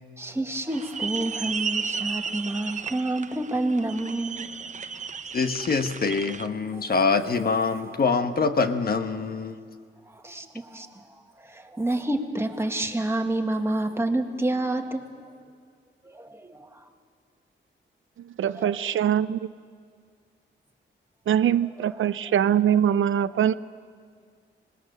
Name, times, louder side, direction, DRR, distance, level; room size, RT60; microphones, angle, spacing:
voice 1, 0.2-4.5 6.7-6.8 10.1-11.0 11.4-15.1 16.0-16.9 18.6-18.9 21.8-22.0, right 2 dB, 10° right, 4 dB, 1.9 m, -29 dB
sound 1, 0.7-6.5, right 6 dB, 40° right, 0.7 m, -34 dB
voice 2, 5.3-9.5, left 4 dB, 50° left, 8 dB, 1.3 m, -24 dB
voice 3, 18.3-19.4 21.3-23.5, right 9 dB, 80° right, 14 dB, 0.6 m, -23 dB
25.5 x 20.0 x 6.7 m, 2.1 s
cardioid pair, 95°, 20 cm